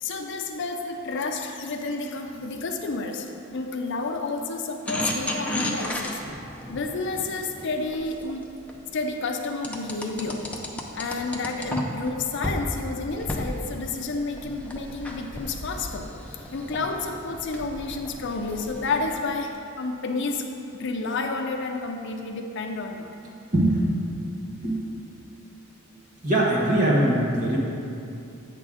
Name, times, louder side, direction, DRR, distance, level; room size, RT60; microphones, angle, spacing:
voice 1, 0.0-6.2 6.7-8.5 8.9-10.5 10.9-16.1 16.5-20.5 20.7-23.1, left 3 dB, 55° left, 4 dB, 0.5 m, -30 dB
sound 1, 4.9-8.8 9.6-12.1 12.4-12.6 13.1-19.2, left 1 dB, 5° left, 0.5 m, -34 dB
voice 2, 26.2-27.6, right 1 dB, 40° right, -5 dB, 1.4 m, -21 dB
8.3 x 3.8 x 6.2 m, 2.7 s
head